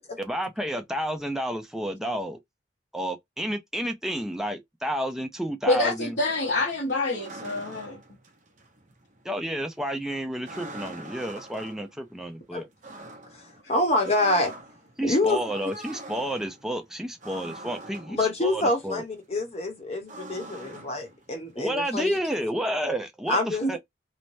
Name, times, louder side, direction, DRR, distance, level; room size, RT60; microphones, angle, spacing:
voice 1, 0.0-2.4 2.9-6.2 9.2-12.7 15.0-19.0 21.6-23.8, equal, 5° right, 0.4 m, -31 dB
voice 2, 5.7-8.0 23.6-23.7, left 2 dB, 70° left, 0.9 m, -26 dB
sound 1, 5.8-22.2, right 1 dB, 40° right, 0.7 m, -45 dB
voice 3, 13.3-14.5 15.0-15.4 18.1-22.2 23.3-23.8, left 2 dB, 35° left, 0.9 m, -26 dB
3.1 x 2.1 x 2.6 m
head